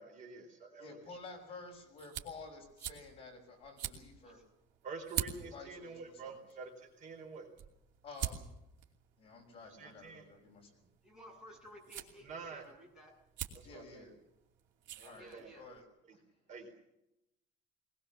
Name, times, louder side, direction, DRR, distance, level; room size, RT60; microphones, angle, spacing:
voice 1, 0.0-0.9 4.8-7.5 9.7-10.3 12.2-12.6 13.5-14.1 15.0-15.5 16.1-16.2 16.5-16.8, right 4 dB, 40° right, 3 dB, 4.3 m, -48 dB
voice 2, 0.8-4.4 5.5-6.4 8.0-8.5 9.2-10.8 13.6-14.1 15.0-15.3 15.5-15.8 16.1-16.2, left 3 dB, 30° left, 1 dB, 6.0 m, -51 dB
sound 1, 1.0-15.8, right 10 dB, 65° right, 2.9 m, -47 dB
voice 3, 5.4-6.0 11.0-13.1 15.2-15.7, equal, 5° right, -2 dB, 7.8 m, -56 dB
21.0 x 21.0 x 7.2 m, 0.84 s
cardioid pair, 180°, 20 cm